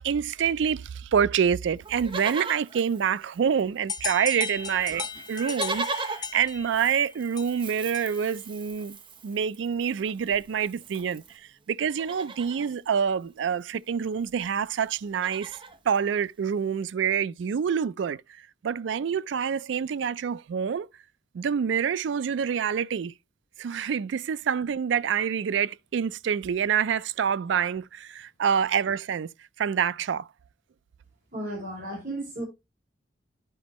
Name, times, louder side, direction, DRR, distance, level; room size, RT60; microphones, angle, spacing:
voice 1, 0.0-9.0 9.2-15.6 15.9-20.9 21.3-23.1 23.6-29.3 29.6-30.3, right 7 dB, 70° right, 0.3 m, -27 dB
Livestock farm animals working animals, 1.8-3.8 4.1-4.2 4.4-11.4 11.8-12.7 13.9-14.0 14.2-14.5 14.8-15.8 16.4-16.5, right 3 dB, 25° right, 0.8 m, -39 dB
sound 1, 3.9-8.4, left 5 dB, 20° left, 0.4 m, -37 dB
voice 2, 31.3-32.4, right 1 dB, 45° right, 4.4 m, -34 dB
10.5 x 5.1 x 2.9 m
head